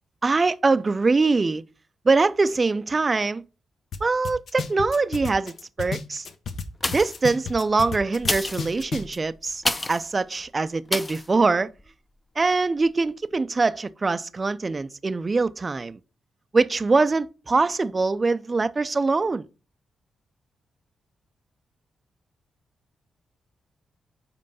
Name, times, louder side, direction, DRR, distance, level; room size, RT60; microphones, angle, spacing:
voice 1, 0.2-1.6 2.1-3.4 4.0-6.2 6.9-9.6 9.9-11.7 12.4-16.0 16.5-19.4, right 3 dB, 35° right, 0.4 m, -23 dB
sound 1, 3.9-4.0 4.2-6.6 6.9-9.2, left 5 dB, 70° left, 0.8 m, -32 dB
sound 2, 6.8-7.3 8.1-10.1 10.9-11.3 11.8-11.9, left 2 dB, 20° left, 0.5 m, -29 dB
5.3 x 4.4 x 5.3 m
cardioid pair, 85°, 0 cm